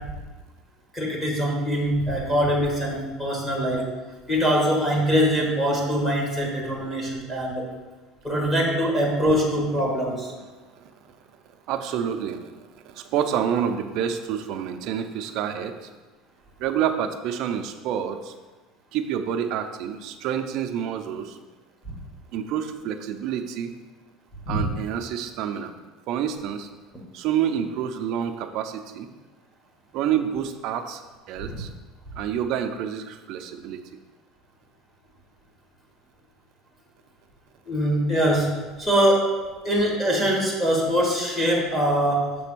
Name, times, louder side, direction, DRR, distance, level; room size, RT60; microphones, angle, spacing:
voice 1, 0.9-3.9 4.3-7.7 8.2-10.3 24.5-24.7 31.5-31.6 37.7-39.4 39.6-42.3, equal, 10° left, -3 dB, 1.2 m, -23 dB
voice 2, 11.7-12.5 12.8-15.9 16.6-18.3 18.9-21.4 22.3-23.7 24.5-25.7 26.1-26.7 27.1-29.1 29.9-31.0 31.3-31.7 32.2-33.8, right 9 dB, 50° right, 7 dB, 0.5 m, -28 dB
7.0 x 3.3 x 6.0 m, 1.3 s
cardioid pair, 175°, 0 cm